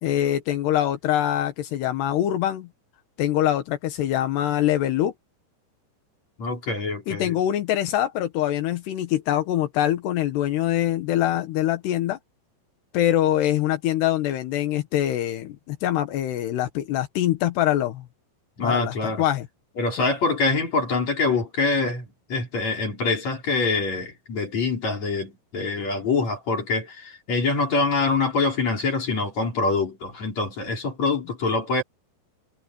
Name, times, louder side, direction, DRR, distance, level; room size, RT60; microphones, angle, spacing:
voice 1, 0.0-2.7 3.2-5.1 7.1-12.2 12.9-18.0 18.6-19.5, left 12 dB, 80° left, 3.4 m, -24 dB
voice 2, 6.4-7.3 18.6-19.2 19.8-31.8, left 3 dB, 40° left, 5.8 m, -25 dB
omnidirectional pair, 4.8 m